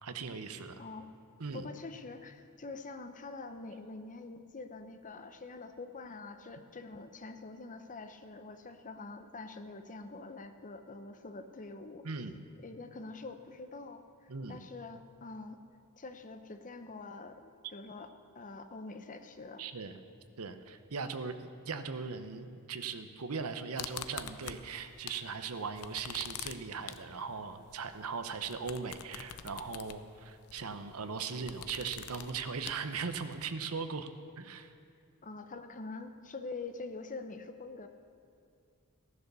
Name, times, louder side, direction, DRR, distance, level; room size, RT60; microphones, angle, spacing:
voice 1, 0.0-0.8 1.4-1.7 12.0-12.4 14.3-14.6 19.6-20.0 20.4-34.1 34.4-34.7, right 5 dB, 70° right, 9 dB, 0.9 m, -39 dB
voice 2, 0.8-1.1 1.5-12.2 12.6-15.6 16.0-18.1 18.3-19.7 35.2-37.9, left 3 dB, 35° left, 8 dB, 0.8 m, -45 dB
sound 1, 23.8-25.3 25.6-33.4, left 9 dB, 80° left, 0.7 m, -46 dB
15.5 x 11.0 x 6.8 m, 2.4 s
head